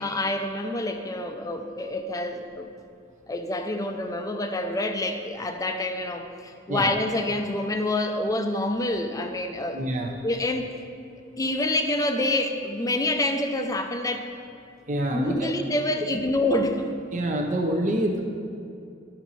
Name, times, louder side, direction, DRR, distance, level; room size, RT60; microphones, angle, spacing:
voice 1, 0.0-2.7 3.3-9.8 10.2-10.7 11.4-14.3 15.1-17.0, left 1 dB, 20° left, 6 dB, 0.5 m, -27 dB
voice 2, 9.7-10.1 14.9-15.5 17.1-18.2, right 1 dB, 40° right, 2 dB, 0.7 m, -26 dB
12.5 x 4.5 x 4.1 m, 2.6 s
head